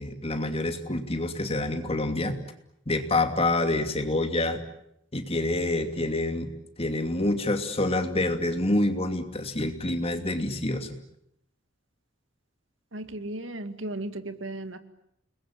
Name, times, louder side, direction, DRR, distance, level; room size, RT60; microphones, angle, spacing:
voice 1, 0.0-2.4 2.9-4.6 5.1-6.5 6.8-11.0, left 2 dB, 30° left, 7 dB, 2.7 m, -27 dB
voice 2, 12.9-14.8, right 1 dB, 85° right, 9 dB, 2.1 m, -35 dB
30.0 x 21.0 x 8.8 m, 0.76 s
head